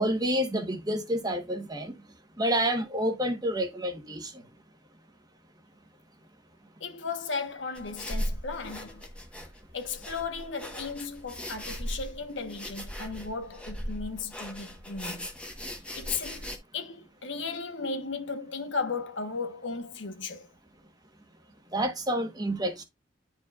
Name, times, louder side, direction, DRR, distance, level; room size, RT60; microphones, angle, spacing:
voice 1, 0.0-1.9 2.4-4.3 21.7-22.8, equal, 20° right, 1.2 m, -28 dB
voice 2, 6.8-9.1 9.7-15.3 15.9-20.5, left 4 dB, 85° left, 1.1 m, -35 dB
sound 1, 7.7-16.6, equal, 5° left, 1.1 m, -38 dB
10.0 x 4.7 x 2.4 m
head